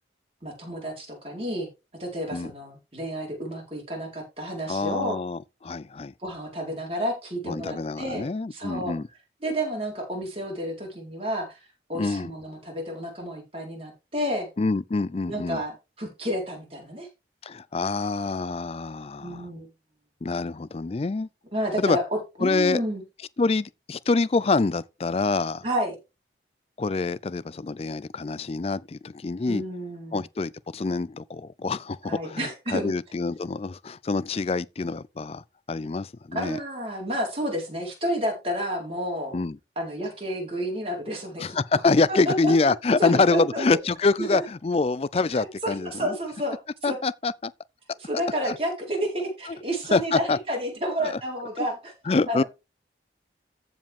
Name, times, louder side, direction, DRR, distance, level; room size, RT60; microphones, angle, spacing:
voice 1, 0.4-1.7 2.0-5.1 6.2-9.0 9.4-11.6 11.9-14.5 15.3-17.1 19.2-19.7 21.5-23.0 25.6-26.0 29.5-30.2 32.0-32.9 36.3-39.4 39.8-41.8 42.1-42.5 43.0-43.6 44.3-44.4 45.3-46.6 46.8-47.0 48.0-51.9 52.3-52.5, equal, 30° right, 4.4 m, -30 dB
voice 2, 4.7-6.1 7.4-9.1 11.9-12.3 14.6-15.6 17.4-19.5 20.2-21.3 21.8-22.0 22.4-22.8 23.4-25.6 26.8-29.6 30.1-36.6 39.3-39.6 41.4-46.1 46.8-47.5 48.4-48.5 49.9-50.4 51.0-51.2 52.1-52.4, left 3 dB, 35° left, 0.4 m, -26 dB
14.5 x 5.0 x 3.6 m
head